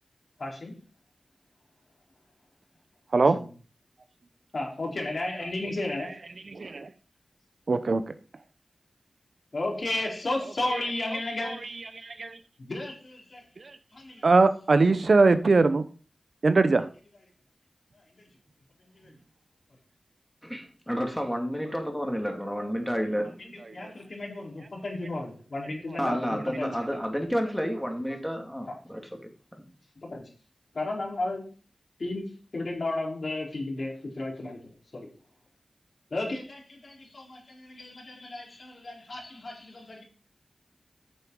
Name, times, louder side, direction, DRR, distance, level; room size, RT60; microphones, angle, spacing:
voice 1, 0.4-0.7 3.1-3.4 4.5-6.2 9.5-11.7 12.6-13.4 13.9-14.3 18.2-18.3 18.9-19.1 23.5-26.7 28.7-28.8 30.0-30.2 30.7-31.4 32.0-35.1 36.1-40.0, left 2 dB, 60° left, 4.2 m, -33 dB
voice 2, 5.9-6.9 7.7-8.1 10.4-12.4 13.6-13.8 14.2-15.8 16.4-16.9 21.6-21.7 22.6-22.7 23.2-23.3 23.6-23.9 25.9-26.0 26.4-27.1, right 3 dB, 65° right, 0.9 m, -24 dB
voice 3, 20.4-23.3 26.0-29.0 29.6-29.7, equal, 5° left, 2.4 m, -30 dB
9.0 x 6.9 x 4.7 m
cardioid pair, 50°, 0 cm